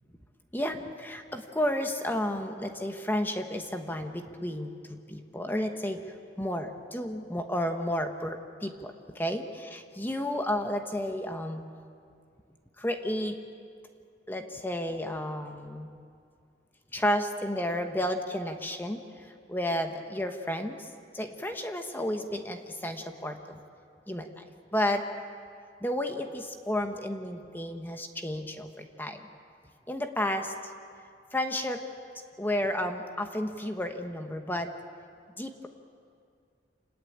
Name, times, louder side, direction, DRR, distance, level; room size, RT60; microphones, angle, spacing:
voice 1, 0.5-6.0 6.4-11.6 12.8-13.4 14.3-15.9 16.9-20.9 21.1-23.6 24.1-24.4 24.7-25.1 25.8-29.2 29.9-30.5 31.3-31.8 32.4-34.7 35.4-35.7, left 1 dB, 10° left, 5 dB, 1.2 m, -32 dB
27.0 x 20.0 x 8.7 m, 2.3 s
head